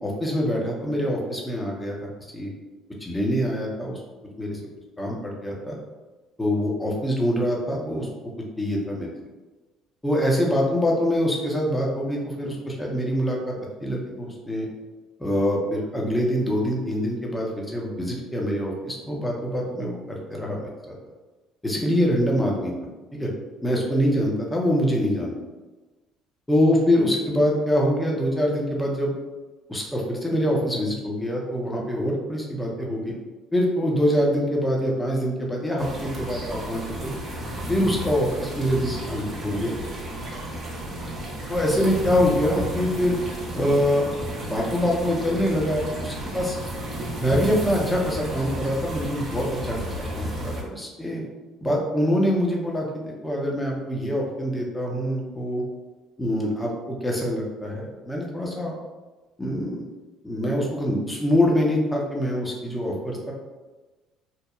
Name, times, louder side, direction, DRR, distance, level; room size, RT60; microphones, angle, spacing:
voice 1, 0.0-1.9 2.3-2.5 3.0-4.0 4.4-4.6 5.0-5.7 6.4-8.1 8.6-9.1 10.0-13.5 13.8-14.7 15.2-21.0 21.6-22.7 23.1-23.3 23.6-25.3 26.5-29.1 29.7-33.1 33.5-37.1 37.7-39.7 41.5-43.2 43.5-44.1 44.4-46.6 47.2-51.2 51.6-55.6 56.2-58.7 59.4-59.8 60.2-63.3, equal, 15° left, -2 dB, 0.7 m, -24 dB
sound 1, 35.8-50.6, right 1 dB, 45° right, 0.7 m, -33 dB
2.9 x 2.0 x 2.3 m, 1.2 s
hypercardioid pair, 65°, 0 cm